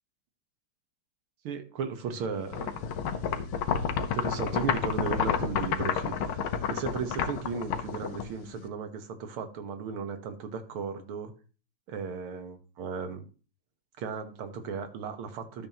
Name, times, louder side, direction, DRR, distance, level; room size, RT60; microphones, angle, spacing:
voice 1, 1.4-2.7 4.0-6.4 6.7-11.3 11.9-13.3 14.0-15.7, right 5 dB, 80° right, 8 dB, 2.1 m, -35 dB
sound 1, 2.5-8.6, left 7 dB, 75° left, 1.7 m, -30 dB
12.5 x 7.5 x 3.0 m, 0.35 s
omnidirectional pair, 2.4 m